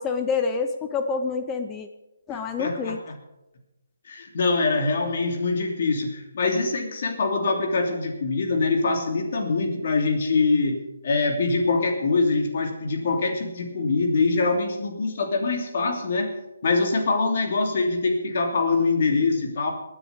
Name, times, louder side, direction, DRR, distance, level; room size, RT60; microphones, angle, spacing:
voice 1, 0.0-1.9 2.3-3.0, left 5 dB, 15° left, 7 dB, 0.8 m, -27 dB
voice 2, 2.3-3.1 4.1-10.8 11.0-16.3 16.6-19.7, left 3 dB, 55° left, 3 dB, 3.0 m, -24 dB
18.0 x 9.9 x 5.3 m, 0.95 s
hypercardioid pair, 150°, 0 cm